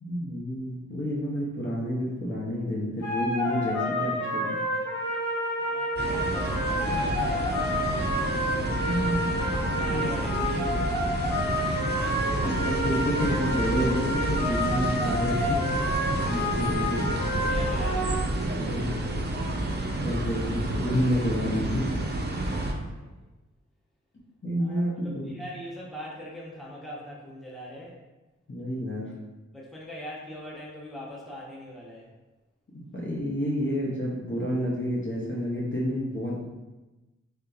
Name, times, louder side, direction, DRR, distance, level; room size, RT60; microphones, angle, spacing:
voice 1, 0.0-4.6 8.8-9.2 9.9-10.1 12.4-15.8 16.3-17.1 18.5-19.0 20.0-21.9 24.4-25.3 28.5-29.1 32.7-36.3, equal, 40° left, -4 dB, 0.8 m, -29 dB
sound 1, 3.0-18.1, left 1 dB, 70° left, 1.0 m, -29 dB
voice 2, 5.6-7.7 9.8-11.1 16.8-18.3 22.4-23.2 24.6-28.0 29.5-32.1, equal, ahead, -6 dB, 0.9 m, -42 dB
sound 2, 6.0-22.7, right 2 dB, 35° right, 0.5 m, -30 dB
3.5 x 2.7 x 2.4 m, 1.1 s
cardioid pair, 45°, 31 cm